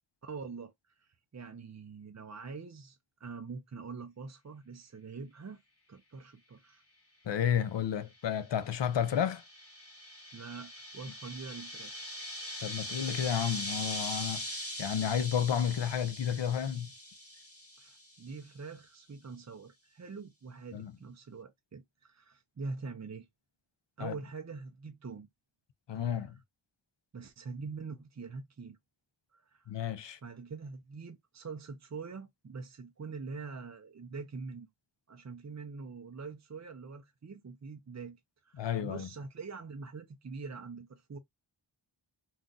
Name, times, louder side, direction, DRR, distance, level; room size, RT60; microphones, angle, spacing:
voice 1, 0.2-5.6 5.9-6.8 10.3-12.1 17.8-23.3 24.0-25.3 25.9-26.3 27.1-28.8 29.3-29.7 30.2-34.7 35.1-38.2 38.4-41.2, right 4 dB, 35° right, 0.4 m, -44 dB
voice 2, 7.3-9.4 12.6-16.9 20.7-20.9 24.0-24.2 25.9-26.4 29.7-30.2 38.6-39.1, left 9 dB, 60° left, 0.5 m, -31 dB
sound 1, 8.4-18.2, left 1 dB, 30° left, 1.1 m, -41 dB
2.4 x 2.3 x 3.7 m
wide cardioid pair, 45°, 49 cm